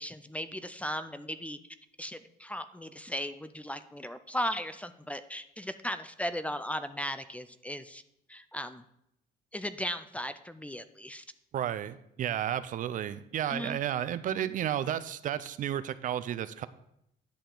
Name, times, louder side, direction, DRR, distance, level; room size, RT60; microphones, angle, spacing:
voice 1, 0.0-1.6 2.0-8.0 8.3-8.8 9.5-11.2 13.5-13.8 14.3-14.5, equal, 10° left, 12 dB, 0.4 m, -37 dB
voice 2, 11.5-16.7, right 10 dB, 50° right, 14 dB, 0.5 m, -32 dB
10.5 x 6.6 x 3.8 m, 0.77 s
cardioid pair, 110°, 17 cm